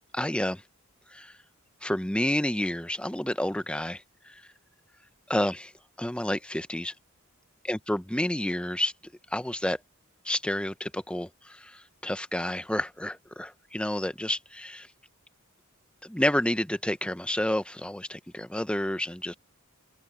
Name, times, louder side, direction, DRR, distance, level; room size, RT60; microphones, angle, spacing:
voice 1, 0.1-0.6 1.1-1.4 1.8-4.4 5.3-5.7 6.0-6.9 7.6-8.9 9.3-9.8 10.2-14.9 16.0-19.3, left 1 dB, 5° left, 0.7 m, -30 dB
open air
head